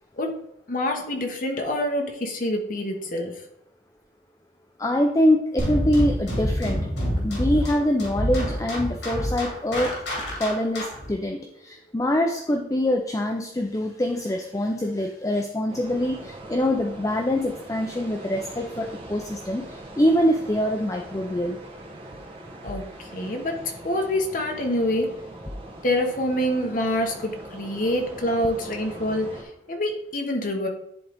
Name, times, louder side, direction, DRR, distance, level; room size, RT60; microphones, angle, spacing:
voice 1, 0.1-3.4 22.6-25.2 25.8-30.7, left 1 dB, 50° left, 2 dB, 1.1 m, -26 dB
voice 2, 4.8-6.8 7.2-9.9 10.4-19.6 20.0-21.6, left 1 dB, 20° left, 2 dB, 0.5 m, -24 dB
sound 1, 5.6-11.1, equal, 80° left, 2.7 m, -27 dB
sound 2, 15.7-29.4, right 1 dB, 30° right, 1.2 m, -42 dB
10.5 x 3.8 x 3.5 m, 0.80 s
head